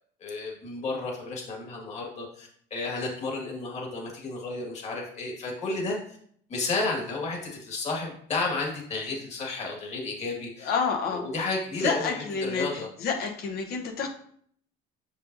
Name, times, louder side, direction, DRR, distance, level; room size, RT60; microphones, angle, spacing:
voice 1, 0.2-6.0 6.5-10.7 11.1-12.9, left 3 dB, 35° left, -1 dB, 1.9 m, -32 dB
voice 2, 10.6-11.3 11.8-14.1, left 5 dB, 55° left, 1 dB, 1.1 m, -29 dB
6.8 x 5.3 x 2.7 m, 0.63 s
cardioid pair, 150°, 19 cm